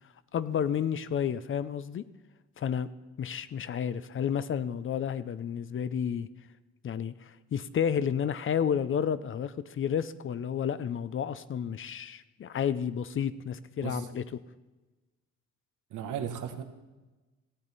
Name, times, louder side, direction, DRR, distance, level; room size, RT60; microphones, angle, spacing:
voice 1, 0.3-2.1 2.6-2.9 3.2-6.3 6.8-14.2, left 8 dB, 45° left, 15 dB, 0.6 m, -31 dB
voice 2, 15.9-16.6, right 8 dB, 80° right, 7 dB, 1.2 m, -35 dB
15.0 x 8.8 x 4.1 m, 1.2 s
cardioid pair, 90°, 30 cm